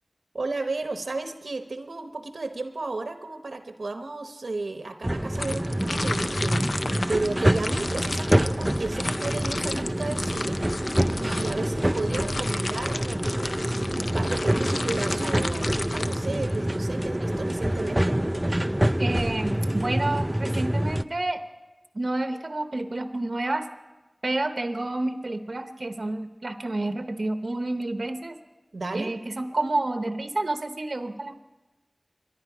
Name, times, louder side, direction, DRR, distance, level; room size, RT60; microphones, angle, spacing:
voice 1, 0.3-10.6 11.2-13.3 13.9-18.2 28.7-29.2, right 3 dB, 90° right, 7 dB, 0.9 m, -33 dB
sound 1, 5.0-21.0, right 1 dB, 15° right, 0.4 m, -26 dB
sound 2, 5.4-16.7, left 3 dB, 85° left, 0.5 m, -34 dB
voice 2, 19.0-21.4 21.9-23.7 24.2-28.4 28.9-31.4, right 2 dB, 60° right, 8 dB, 0.8 m, -29 dB
23.0 x 10.5 x 4.9 m, 1.1 s
wide cardioid pair, 55°, 0 cm